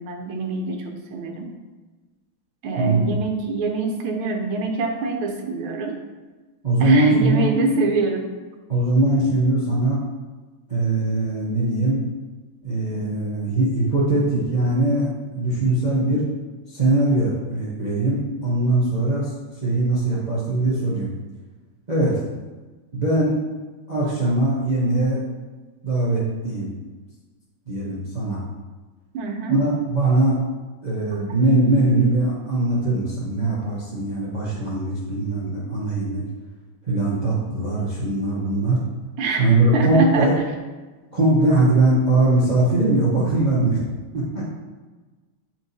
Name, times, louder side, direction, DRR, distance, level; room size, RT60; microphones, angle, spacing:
voice 1, 0.0-1.5 2.6-5.9 6.8-8.3 29.1-29.7 39.2-39.5 39.7-40.5, right 3 dB, 75° right, 2 dB, 1.6 m, -25 dB
voice 2, 2.8-3.1 6.6-7.5 8.7-10.0 10.7-12.0 12.6-16.2 16.7-19.3 19.6-21.1 21.9-22.3 22.9-23.4 23.9-25.2 25.8-26.7 27.7-28.4 29.5-30.4 30.8-36.2 36.9-38.8 39.4-40.3 41.1-43.8 44.1-44.4, right 2 dB, 55° right, -6 dB, 0.4 m, -21 dB
8.1 x 4.4 x 2.7 m, 1.3 s
omnidirectional pair, 2.4 m